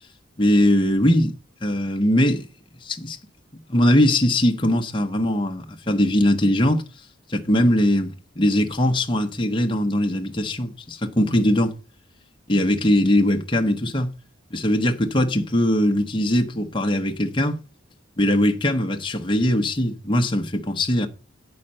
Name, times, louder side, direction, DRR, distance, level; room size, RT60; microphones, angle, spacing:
voice 1, 0.4-1.3 1.6-2.5 2.8-3.2 3.7-6.8 7.3-11.7 12.5-14.1 14.5-17.6 18.2-21.1, left 1 dB, 25° left, 0.8 m, -20 dB
8.6 x 5.7 x 5.4 m
head